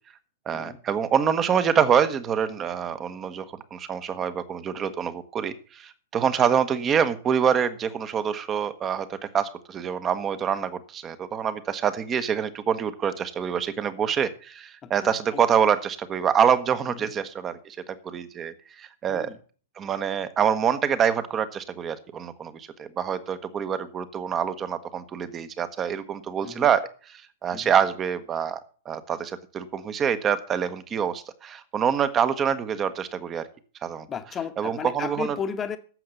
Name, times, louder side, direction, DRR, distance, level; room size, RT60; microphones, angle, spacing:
voice 1, 0.5-3.4 3.7-17.8 18.0-19.3 19.8-26.8 27.1-28.6 28.8-33.5 33.8-34.1 34.6-35.3, right 8 dB, 20° right, 1.2 m, -26 dB
voice 2, 14.8-15.4 16.9-17.1 19.1-19.4 26.4-26.7 27.5-27.7 34.1-35.8, left 7 dB, 20° left, 1.2 m, -35 dB
12.0 x 7.7 x 7.1 m
figure-of-eight pair, 105°, 0 cm